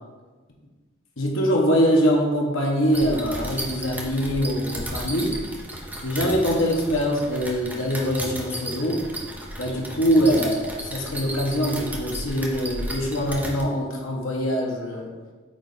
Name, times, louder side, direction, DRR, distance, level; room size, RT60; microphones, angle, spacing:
voice 1, 1.2-5.4 6.0-9.0 9.6-15.1, equal, 70° left, -1 dB, 1.2 m, -23 dB
sound 1, 2.9-13.6, right 1 dB, 10° right, 0.9 m, -34 dB
8.7 x 3.3 x 4.1 m, 1.3 s
head